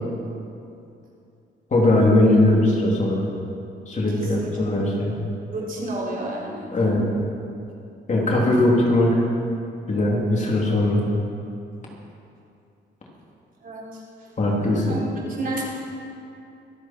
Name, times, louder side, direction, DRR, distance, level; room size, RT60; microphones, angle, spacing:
voice 1, 1.7-3.3 3.9-5.1 6.7-7.0 8.1-9.1 9.9-11.0 14.4-14.9, left 1 dB, 35° left, -3 dB, 3.2 m, -19 dB
voice 2, 4.1-4.7 5.5-6.7 13.6-14.0 14.9-15.6, right 1 dB, 45° right, -4 dB, 4.1 m, -31 dB
24.5 x 8.3 x 4.6 m, 2.6 s
cardioid pair, 90°, 20 cm